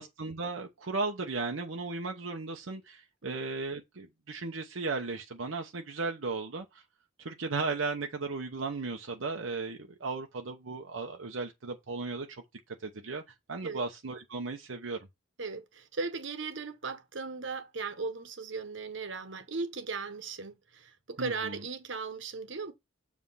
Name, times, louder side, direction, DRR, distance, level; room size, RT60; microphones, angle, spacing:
voice 1, 0.0-6.8 7.2-12.4 12.8-13.2 13.5-15.0 21.2-21.6, right 3 dB, 90° right, 0.9 m, -36 dB
voice 2, 15.4-22.7, right 4 dB, 70° right, 1.2 m, -37 dB
7.4 x 3.5 x 5.6 m
head